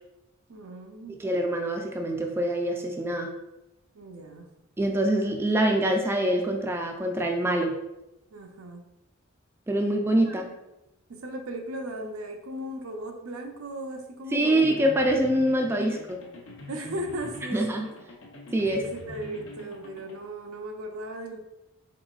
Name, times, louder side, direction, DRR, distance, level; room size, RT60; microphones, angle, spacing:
voice 1, 0.5-1.2 3.9-4.5 8.3-8.8 10.2-10.6 11.1-14.8 15.8-15.9 16.7-17.9 18.7-21.4, right 1 dB, 80° right, 3 dB, 0.6 m, -37 dB
voice 2, 1.2-3.3 4.8-7.7 9.7-10.4 14.3-16.0 17.5-17.8 18.5-18.8, right 1 dB, 10° right, 2 dB, 0.3 m, -24 dB
sound 1, 14.6-20.1, left 2 dB, 65° left, 0.7 m, -45 dB
3.8 x 3.8 x 2.4 m, 0.92 s
head